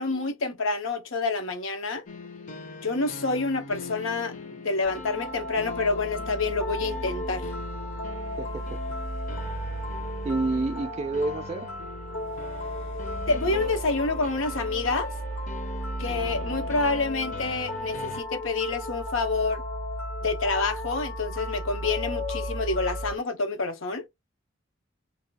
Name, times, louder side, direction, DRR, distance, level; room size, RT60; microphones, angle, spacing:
voice 1, 0.0-2.0 2.8-7.4 13.3-15.1 16.0-19.6 20.2-24.1, left 3 dB, 90° left, 0.9 m, -28 dB
sound 1, 2.1-18.2, left 3 dB, 40° left, 0.6 m, -42 dB
sound 2, 4.8-23.1, equal, 75° left, 1.2 m, -34 dB
voice 2, 8.4-8.8 10.2-11.7, right 2 dB, 30° right, 0.3 m, -29 dB
2.8 x 2.3 x 4.0 m
head